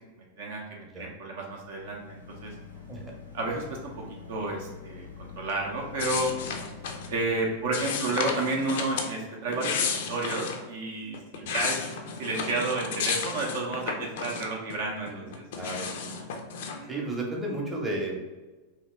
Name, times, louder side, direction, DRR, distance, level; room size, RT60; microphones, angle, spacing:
voice 1, 0.2-2.5 3.3-6.3 7.1-11.8 12.2-15.4 16.7-17.1, right 2 dB, 55° right, -1 dB, 0.6 m, -31 dB
sound 1, 1.4-8.0, left 6 dB, 85° left, 0.7 m, -46 dB
sound 2, 6.0-7.1 7.7-9.1 9.5-10.6 11.1-14.7 15.1-16.8, left 5 dB, 55° left, 0.4 m, -33 dB
voice 2, 15.1-16.1 16.9-18.2, right 2 dB, 15° right, -2 dB, 0.7 m, -34 dB
2.8 x 2.8 x 3.2 m, 1.2 s
figure-of-eight pair, 90°, 0 cm